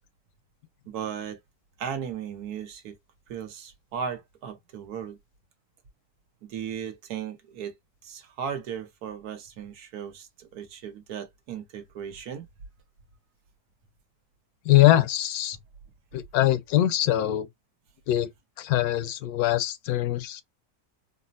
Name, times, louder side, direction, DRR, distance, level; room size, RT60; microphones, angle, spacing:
voice 1, 0.9-1.4 1.8-3.0 3.3-5.2 6.4-7.8 8.0-12.5, right 8 dB, 85° right, 1.3 m, -36 dB
voice 2, 14.7-15.6 16.1-17.5 18.1-18.3 18.6-20.4, left 14 dB, 80° left, 1.1 m, -22 dB
4.1 x 2.0 x 2.5 m
omnidirectional pair, 1.6 m